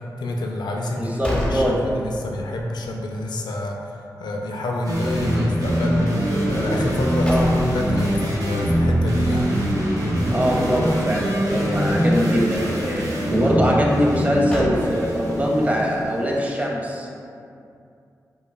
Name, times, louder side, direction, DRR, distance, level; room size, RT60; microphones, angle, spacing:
voice 1, 0.2-3.8 4.2-6.1 6.5-9.5, left 1 dB, 80° left, 0 dB, 0.4 m, -28 dB
sound 1, 0.8-2.5 2.9-3.0 6.8-8.0 14.1-15.4, left 1 dB, 15° left, 0.9 m, -30 dB
voice 2, 0.9-1.8 7.3-7.5 10.3-17.1, equal, 20° right, -2 dB, 0.7 m, -22 dB
sound 2, 4.8-16.4, equal, 55° right, 0.9 m, -23 dB
5.0 x 2.4 x 2.2 m, 2.5 s
cardioid pair, 40°, 7 cm